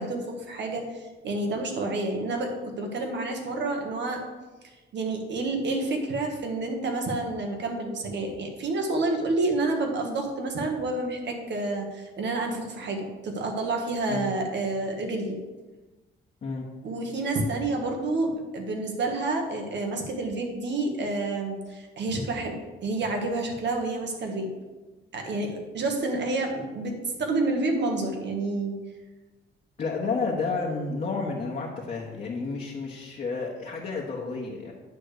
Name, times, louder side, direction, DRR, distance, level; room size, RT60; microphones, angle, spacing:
voice 1, 0.0-4.2 4.6-15.4 16.8-24.5 25.1-28.7, right 2 dB, 65° right, 3 dB, 1.6 m, -29 dB
voice 2, 29.8-34.7, left 4 dB, 40° left, -3 dB, 1.3 m, -31 dB
9.4 x 3.3 x 6.6 m, 1.2 s
cardioid pair, 90°, 20 cm